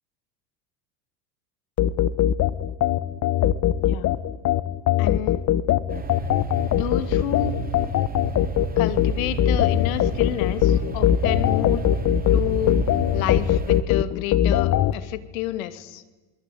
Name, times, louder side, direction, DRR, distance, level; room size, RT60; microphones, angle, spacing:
sound 1, 1.8-14.9, left 11 dB, 40° left, 1.4 m, -21 dB
voice 1, 3.8-4.2 5.0-5.4 6.7-7.5 8.8-11.8 12.3-12.8 13.1-16.0, left 14 dB, 70° left, 13 dB, 2.6 m, -30 dB
sound 2, 5.9-13.8, right 5 dB, 20° right, 3.0 m, -32 dB
28.5 x 22.5 x 9.3 m, 1.2 s
supercardioid pair, 110°, 42 cm